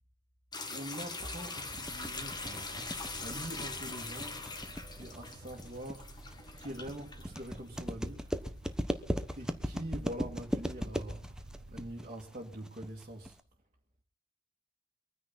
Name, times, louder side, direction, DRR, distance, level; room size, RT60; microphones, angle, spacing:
sound 1, 0.5-7.9 8.3-8.4 9.3-9.4 11.1-11.2, left 3 dB, 20° left, 1.9 m, -42 dB
voice 1, 0.6-4.6 4.9-6.1 6.6-8.4 9.4-13.4, right 1 dB, 35° right, 2.2 m, -44 dB
sound 2, 1.4-13.4, equal, 5° right, 1.0 m, -38 dB
sound 3, 1.5-12.1, right 1 dB, 80° right, 1.2 m, -53 dB
24.5 x 9.8 x 4.2 m
head